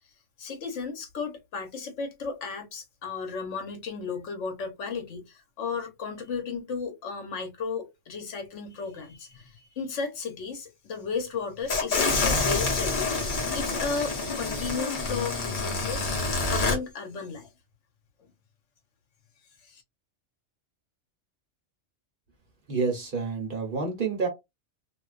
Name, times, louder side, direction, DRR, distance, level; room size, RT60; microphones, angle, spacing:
voice 1, 0.4-16.1 16.5-17.5 19.7-19.8, left 5 dB, 75° left, 1.1 m, -34 dB
sound 1, 11.7-16.8, left 3 dB, 45° left, 0.9 m, -27 dB
voice 2, 22.7-24.3, right 4 dB, 50° right, 0.9 m, -28 dB
2.4 x 2.3 x 2.3 m
omnidirectional pair, 1.2 m